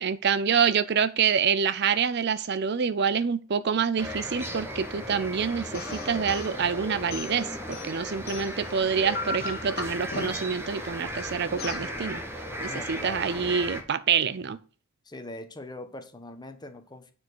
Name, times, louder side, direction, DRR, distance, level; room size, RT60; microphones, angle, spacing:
voice 1, 0.0-12.2 12.6-14.6, right 6 dB, 50° right, 0.5 m, -26 dB
sound 1, 4.0-13.8, equal, 10° right, 1.5 m, -36 dB
sound 2, 5.7-6.5 7.1-8.7 9.1-10.6 11.6-11.9, left 3 dB, 45° left, 1.6 m, -37 dB
voice 2, 12.6-13.4 15.0-17.1, left 1 dB, 20° left, 1.1 m, -41 dB
9.5 x 4.5 x 6.3 m
head